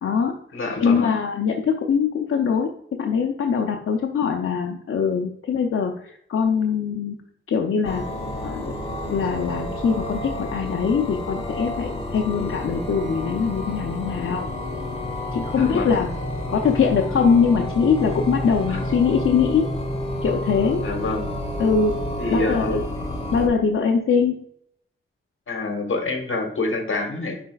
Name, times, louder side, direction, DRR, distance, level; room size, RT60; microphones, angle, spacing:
voice 1, 0.0-0.3 0.8-7.1 7.5-8.0 8.4-8.7 9.1-14.5 15.3-16.1 16.5-19.7 20.2-20.9 21.6-21.9 22.3-22.8 23.3-24.3, left 6 dB, 85° left, 2 dB, 0.6 m, -22 dB
voice 2, 0.5-1.2 15.5-16.0 18.7-18.8 20.8-21.4 22.2-22.9 25.5-27.4, left 2 dB, 70° left, 4 dB, 1.3 m, -27 dB
sound 1, 7.8-23.5, left 1 dB, 30° left, 1.1 m, -30 dB
10.5 x 4.3 x 2.3 m, 0.69 s
wide cardioid pair, 150°, 21 cm